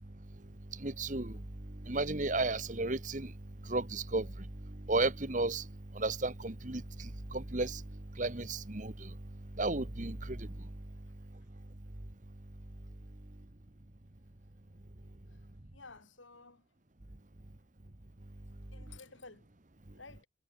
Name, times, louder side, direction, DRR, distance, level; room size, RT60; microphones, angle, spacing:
voice 1, 0.8-1.4 1.8-3.3 3.7-4.3 4.9-5.6 5.9-7.8 8.2-9.1 9.6-10.5, right 2 dB, 40° right, 1.4 m, -33 dB
voice 2, 11.1-11.5 15.3-15.5 15.7-16.7 18.7-19.5 19.9-20.3, left 3 dB, 85° left, 6.2 m, -54 dB
head